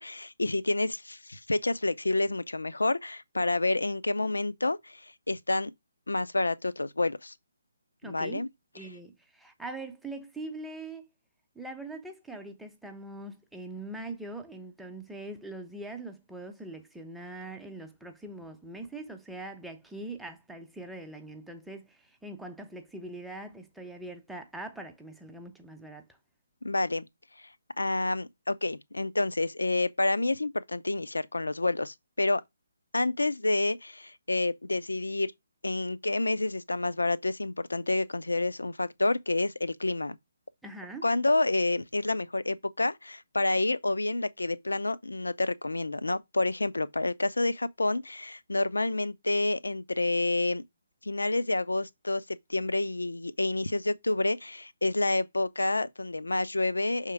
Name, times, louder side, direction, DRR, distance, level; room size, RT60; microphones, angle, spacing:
voice 1, 0.0-5.7 6.1-7.3 8.0-8.5 26.6-27.1 27.8-32.4 32.9-35.3 35.6-40.2 41.0-50.6 51.0-57.1, left 2 dB, 75° left, 0.6 m, -29 dB
voice 2, 8.0-8.5 8.7-11.1 11.5-26.1 40.6-41.1, right 2 dB, ahead, 0.8 m, -42 dB
6.3 x 3.7 x 4.7 m
figure-of-eight pair, 140°, 0 cm